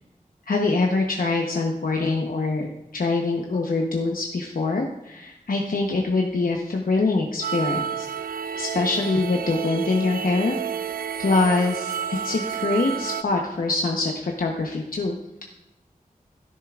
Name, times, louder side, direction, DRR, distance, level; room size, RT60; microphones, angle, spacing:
voice 1, 0.5-8.1 8.6-10.6 11.2-15.1, left 3 dB, 75° left, 0 dB, 1.0 m, -24 dB
sound 1, 7.4-13.2, right 8 dB, 85° right, 0.4 m, -30 dB
13.0 x 10.5 x 2.5 m, 0.90 s
wide cardioid pair, 75°, 15 cm